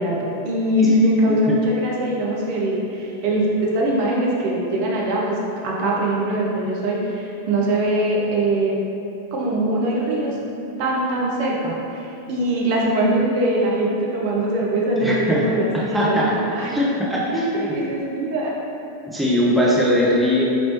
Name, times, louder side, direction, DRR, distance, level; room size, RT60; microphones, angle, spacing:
voice 1, 0.0-5.4 5.6-8.8 9.3-16.7 17.3-18.6, right 1 dB, 45° right, -4 dB, 0.6 m, -22 dB
voice 2, 15.0-15.4 15.9-16.3 16.6-17.7 19.1-20.4, equal, 5° right, -6 dB, 0.6 m, -20 dB
4.2 x 3.0 x 3.0 m, 2.9 s
figure-of-eight pair, 90°, 0 cm